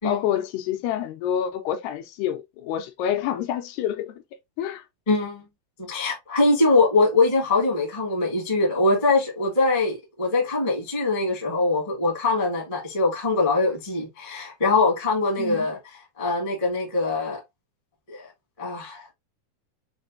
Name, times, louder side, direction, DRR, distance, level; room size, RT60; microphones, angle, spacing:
voice 1, 0.0-4.2 4.6-4.8 15.4-15.7, left 10 dB, 90° left, 2.8 m, -27 dB
voice 2, 5.1-5.4 5.8-15.8 16.2-17.4 18.1-18.3 18.6-19.1, left 3 dB, 45° left, 0.4 m, -23 dB
6.3 x 2.6 x 2.6 m
omnidirectional pair, 4.5 m